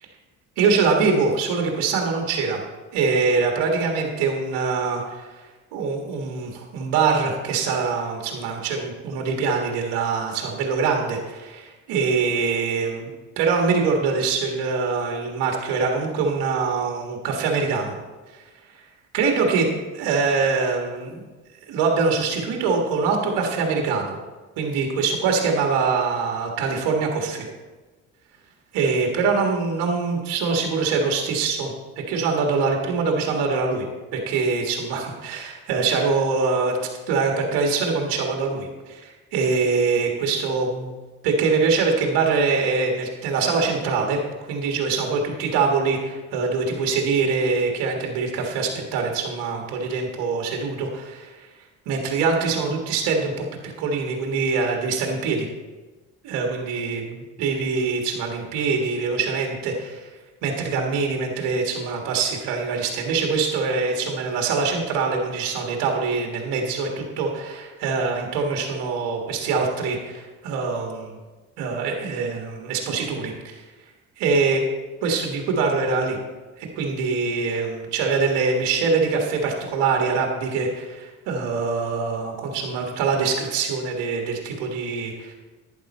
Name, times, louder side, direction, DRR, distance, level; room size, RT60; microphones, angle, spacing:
voice 1, 0.6-2.6 2.9-13.1 13.4-17.9 18.3-18.4 18.7-18.8 19.1-21.2 21.7-24.2 24.6-27.5 28.7-31.7 32.1-33.9 34.1-36.8 37.1-40.9 41.2-51.5 51.9-55.5 56.2-60.1 60.4-66.9 67.2-71.2 71.6-73.6 74.2-74.6 75.0-76.2 76.6-85.3, right 4 dB, 75° right, 2 dB, 1.7 m, -24 dB
11.0 x 9.5 x 4.3 m, 1.3 s
hypercardioid pair, 60°, 41 cm